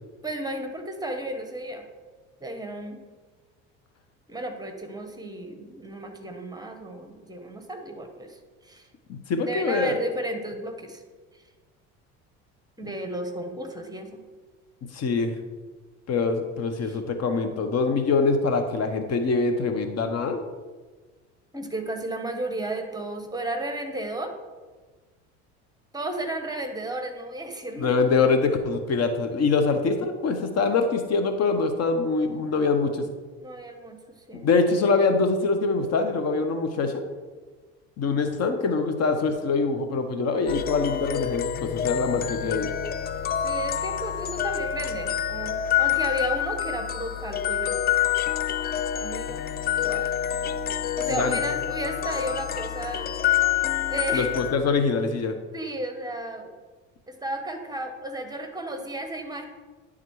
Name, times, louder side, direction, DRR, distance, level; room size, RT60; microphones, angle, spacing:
voice 1, 0.2-1.8 2.4-3.0 4.3-8.4 8.6-8.9 9.4-11.0 12.8-14.1 16.8-17.0 21.5-24.3 25.9-27.9 33.4-34.0 34.3-34.5 43.4-47.8 48.9-49.4 49.8-50.1 50.9-53.1 53.8-54.3 55.5-56.5 57.1-59.5, right 1 dB, 10° right, 5 dB, 1.1 m, -33 dB
voice 2, 9.1-10.0 14.9-15.3 16.1-20.4 27.8-33.1 34.3-37.0 38.0-42.7 51.1-51.4 54.1-55.4, left 4 dB, 45° left, 7 dB, 0.9 m, -24 dB
sound 1, 40.5-54.5, left 10 dB, 30° left, 0.3 m, -27 dB
10.5 x 3.7 x 4.7 m, 1.4 s
supercardioid pair, 80°, 35 cm